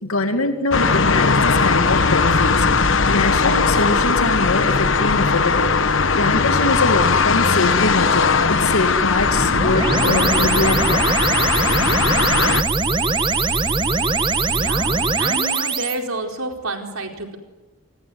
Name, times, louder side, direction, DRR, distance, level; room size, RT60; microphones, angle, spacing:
voice 1, 0.0-11.3, left 2 dB, 85° left, 6 dB, 2.5 m, -23 dB
sound 1, 0.7-12.6, left 4 dB, 65° left, 1.2 m, -18 dB
sound 2, 9.2-16.0, right 3 dB, 20° right, 1.3 m, -21 dB
voice 2, 14.5-17.4, right 2 dB, 85° right, 3 dB, 4.6 m, -29 dB
29.5 x 19.5 x 9.7 m, 1.2 s
head